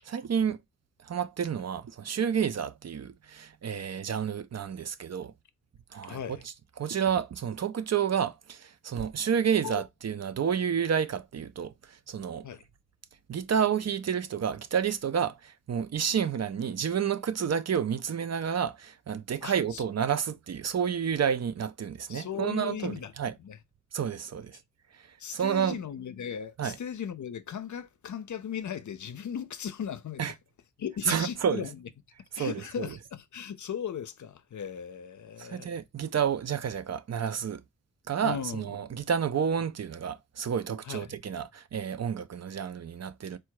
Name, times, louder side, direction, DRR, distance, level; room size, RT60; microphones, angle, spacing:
voice 1, 0.1-0.6 1.0-5.3 5.9-12.5 13.3-23.3 23.9-24.6 25.3-25.8 26.6-26.8 30.2-30.3 31.1-31.7 32.3-32.9 35.4-37.6 38.1-43.4, right 7 dB, 60° right, 0.5 m, -30 dB
voice 2, 6.1-6.4 9.6-9.8 12.4-12.6 19.4-19.8 22.1-23.6 25.2-30.2 30.8-31.8 32.4-35.7 38.2-38.8 40.8-41.2, left 8 dB, 75° left, 0.5 m, -37 dB
4.4 x 2.2 x 4.6 m
wide cardioid pair, 115°, 29 cm